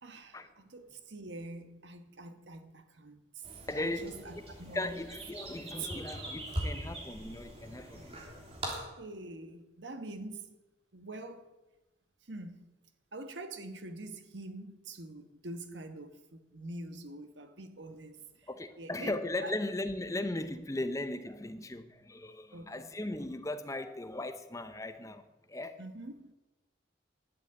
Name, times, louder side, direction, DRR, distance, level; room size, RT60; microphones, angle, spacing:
voice 1, 0.0-3.4 3.7-5.0 5.8-5.9 9.0-10.5 10.9-11.6 12.3-12.7 13.1-18.5 18.8-19.1 19.4-19.5 22.5-22.9 25.8-26.3, right 2 dB, 75° right, 1.3 m, -45 dB
sound 1, 3.4-8.8, right 1 dB, 30° right, 3.1 m, -41 dB
voice 2, 3.7-4.2 4.7-8.2 18.5-25.2 25.5-25.8, left 2 dB, 15° left, 0.7 m, -37 dB
11.5 x 8.3 x 8.7 m
head